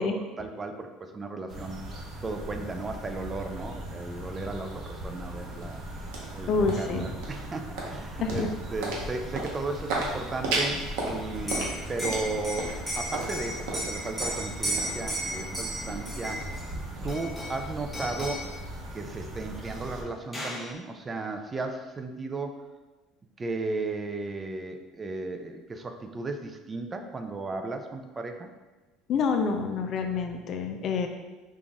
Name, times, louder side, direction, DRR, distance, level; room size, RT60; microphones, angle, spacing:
voice 1, 0.0-1.8 2.2-5.8 6.3-16.4 17.0-18.5 18.9-22.6 23.4-28.5, right 3 dB, 25° right, 5 dB, 0.3 m, -35 dB
sound 1, 1.5-20.0, right 1 dB, 40° right, 0.8 m, -40 dB
sound 2, 5.1-17.6, right 2 dB, 80° right, 0.8 m, -36 dB
voice 2, 6.5-7.1 8.2-8.5 29.1-31.1, left 5 dB, 50° left, 5 dB, 0.4 m, -27 dB
Liquid, 11.3-16.6 17.1-17.6 17.9-18.5 19.7-19.8 20.0-20.7, equal, 10° left, 1.0 m, -34 dB
3.8 x 2.4 x 3.5 m, 1.2 s
supercardioid pair, 110°, 0 cm